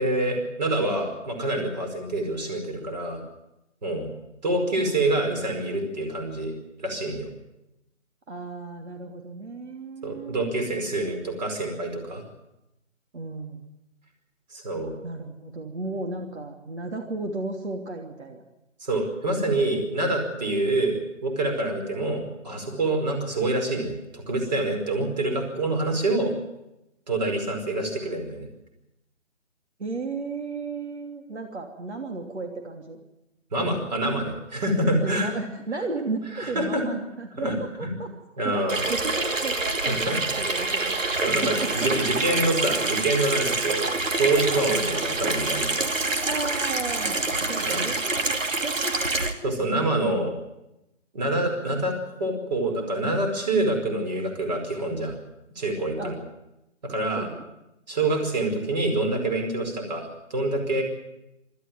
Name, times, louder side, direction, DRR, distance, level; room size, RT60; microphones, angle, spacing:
voice 1, 0.0-3.2 3.8-4.1 4.4-6.5 6.8-7.3 10.0-12.2 14.5-14.9 18.8-26.3 27.1-28.5 33.5-35.3 36.4-36.8 37.4-37.6 37.8-38.0 38.4-38.8 39.9-40.2 41.2-43.9 44.2-45.9 47.6-47.9 49.4-50.3 51.1-55.1 55.6-56.2 56.8-57.3 57.9-60.8, right 2 dB, 35° right, 4 dB, 5.1 m, -26 dB
voice 2, 8.3-10.4 13.1-13.6 15.0-18.4 29.8-33.0 35.0-38.1 38.4-40.9 41.4-41.9 46.2-47.2 47.4-49.5 56.0-56.2 57.2-57.4, right 3 dB, 65° right, 2 dB, 3.0 m, -34 dB
Water tap faucet / Sink (filling or washing), 38.7-49.3, right 3 dB, 80° right, 2.6 m, -26 dB
26.0 x 13.5 x 9.5 m, 0.91 s
hypercardioid pair, 170°, 38 cm